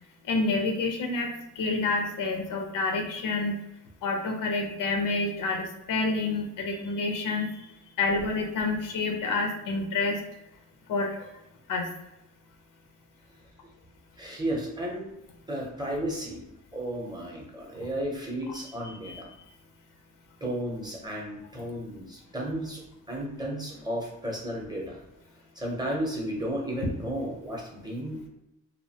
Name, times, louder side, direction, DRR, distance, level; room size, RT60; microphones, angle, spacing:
voice 1, 0.2-1.3 1.6-3.5 4.0-7.6 8.0-10.2 10.9-11.3 11.7-11.9 17.8-17.9 19.0-19.2, left 3 dB, 80° left, 2 dB, 0.6 m, -28 dB
voice 2, 14.2-15.0 15.5-16.4 16.7-19.3 20.4-25.0 25.6-28.3, right 1 dB, 15° right, -2 dB, 0.6 m, -33 dB
2.6 x 2.0 x 2.7 m, 0.88 s
cardioid pair, 110°, 32 cm